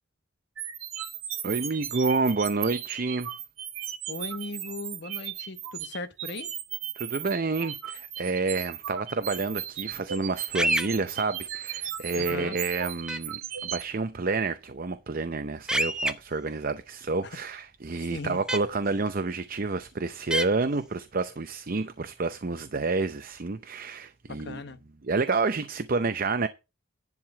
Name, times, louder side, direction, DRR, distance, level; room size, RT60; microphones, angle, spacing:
sound 1, 0.6-13.8, right 10 dB, 80° right, 1.5 m, -36 dB
voice 1, 1.4-3.3 7.0-24.6 25.0-26.5, right 3 dB, 45° right, 0.6 m, -29 dB
voice 2, 4.1-6.5 12.2-12.6 18.1-18.4 24.3-24.8, left 3 dB, 55° left, 1.0 m, -38 dB
sound 2, 10.5-10.9 13.1-13.2 15.7-16.1 18.5-18.6 20.3-20.5, right 1 dB, 5° right, 0.7 m, -25 dB
11.0 x 4.7 x 7.4 m
head